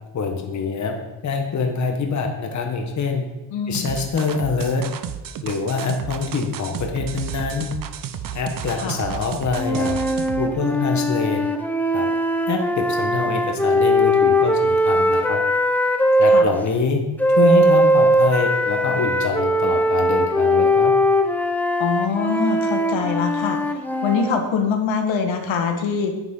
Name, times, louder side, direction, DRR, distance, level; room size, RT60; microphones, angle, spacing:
voice 1, 0.1-0.9 1.2-3.2 3.7-4.8 5.4-7.7 8.3-10.0 10.4-11.4 11.9-12.1 12.5-15.4 16.2-17.0 17.4-20.9, left 4 dB, 40° left, 3 dB, 1.2 m, -25 dB
voice 2, 3.5-3.9 8.8-9.0 16.3-16.5 21.8-23.6 24.0-26.1, left 5 dB, 90° left, 4 dB, 1.6 m, -23 dB
sound 1, 3.7-10.5, right 9 dB, 50° right, 0.6 m, -32 dB
sound 2, 9.5-16.5 17.2-24.4, equal, 5° left, 0.5 m, -20 dB
9.8 x 9.3 x 3.7 m, 1.0 s
wide cardioid pair, 170°, 45 cm